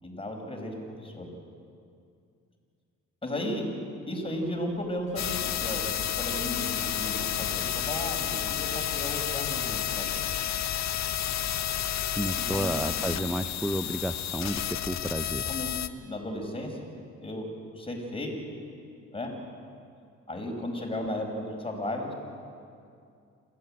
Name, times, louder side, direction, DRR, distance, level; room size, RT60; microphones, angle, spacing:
voice 1, 0.0-1.3 3.2-3.6 4.1-10.2 12.4-13.3 15.4-16.9 17.2-17.5 17.8-18.3 19.1-19.3 20.3-22.1, left 1 dB, 20° left, 1 dB, 5.3 m, -35 dB
Sliding door, 4.3-9.3, right 1 dB, 55° right, 6.8 m, -48 dB
sound 1, 5.2-15.9, left 10 dB, 60° left, 1.0 m, -31 dB
voice 2, 12.1-15.5, right 1 dB, 5° right, 10 dB, 0.6 m, -31 dB
27.5 x 13.5 x 8.8 m, 2.4 s
cardioid pair, 90°, 30 cm